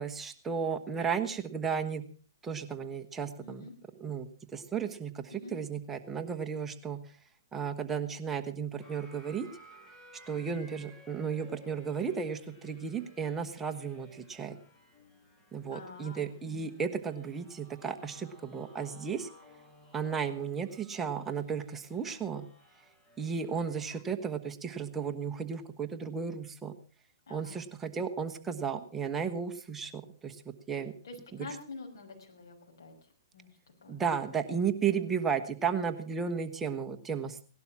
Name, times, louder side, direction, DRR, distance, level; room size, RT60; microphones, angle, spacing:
voice 1, 0.0-2.0 2.4-3.6 4.0-7.2 7.5-9.5 10.3-14.6 15.5-19.3 19.9-22.4 23.2-26.7 27.3-30.9 31.3-31.5 33.9-37.4, right 6 dB, 10° right, 5 dB, 1.2 m, -34 dB
voice 2, 3.4-3.7 5.3-5.6 10.3-10.6 15.7-16.3 22.0-22.3 27.3-27.6 31.0-32.9 33.3-33.5 33.8-34.0 34.3-34.4, left 3 dB, 75° left, 2 dB, 5.9 m, -47 dB
sound 1, 8.8-24.0, equal, 15° left, 2.5 m, -57 dB
18.0 x 12.0 x 6.0 m, 0.40 s
hypercardioid pair, 140°, 2 cm